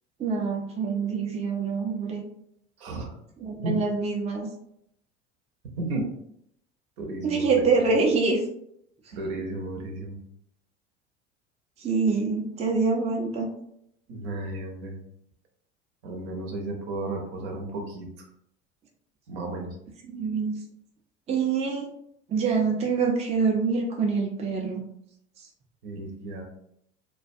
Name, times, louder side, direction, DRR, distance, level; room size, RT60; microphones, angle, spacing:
voice 1, 0.2-2.2 3.4-4.5 7.2-8.4 11.8-13.5 20.1-20.6 21.3-21.9 22.3-24.8, right 4 dB, 20° right, 1 dB, 0.5 m, -25 dB
voice 2, 2.8-3.1 3.6-3.8 5.8-6.1 7.0-7.5 9.1-10.2 14.1-15.0 16.0-18.1 19.3-19.7 25.8-26.4, right 2 dB, 70° right, 1 dB, 0.8 m, -33 dB
2.2 x 2.2 x 2.6 m, 0.71 s
hypercardioid pair, 75°, 35 cm